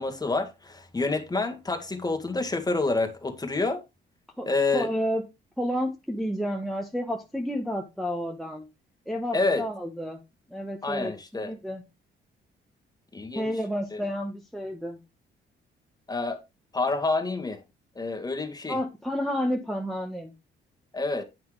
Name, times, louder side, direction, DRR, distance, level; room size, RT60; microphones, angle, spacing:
voice 1, 0.0-3.8 4.5-4.9 9.3-9.6 10.8-11.5 13.1-13.5 13.9-14.0 16.1-16.4 16.7-17.6 18.0-18.8 20.9-21.2, left 3 dB, 20° left, 1.8 m, -28 dB
voice 2, 4.4-5.2 5.6-8.6 9.1-10.2 10.5-11.8 13.3-15.0 18.7-20.3, equal, ahead, 1.2 m, -30 dB
9.6 x 5.7 x 3.3 m
cardioid pair, 90°, 20 cm